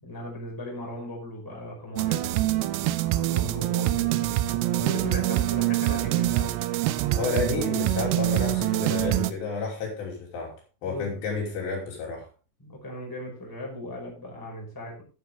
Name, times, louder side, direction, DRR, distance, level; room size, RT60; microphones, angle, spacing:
voice 1, 0.0-6.6 10.8-11.2 12.6-15.0, left 1 dB, 5° left, -2 dB, 4.6 m, -38 dB
sound 1, 2.0-9.3, right 15 dB, 80° right, 2.6 m, -25 dB
voice 2, 7.2-12.3, left 4 dB, 65° left, -1 dB, 5.0 m, -31 dB
14.5 x 8.1 x 3.5 m, 0.33 s
omnidirectional pair, 5.6 m